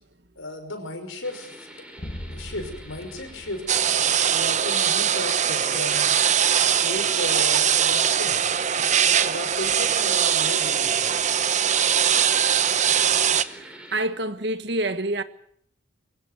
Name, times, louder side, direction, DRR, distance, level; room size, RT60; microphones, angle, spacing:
voice 1, 0.4-1.7 2.3-3.6 4.3-6.0 6.8-8.4 9.0-11.1, left 1 dB, 85° left, 5.7 m, -34 dB
sound 1, 1.2-14.1, right 1 dB, 5° right, 3.9 m, -46 dB
sound 2, 2.0-4.6, equal, 30° left, 1.0 m, -40 dB
sound 3, 3.7-13.4, right 8 dB, 35° right, 0.8 m, -21 dB
voice 2, 13.5-15.2, right 1 dB, 55° right, 1.5 m, -27 dB
24.0 x 16.5 x 9.3 m
head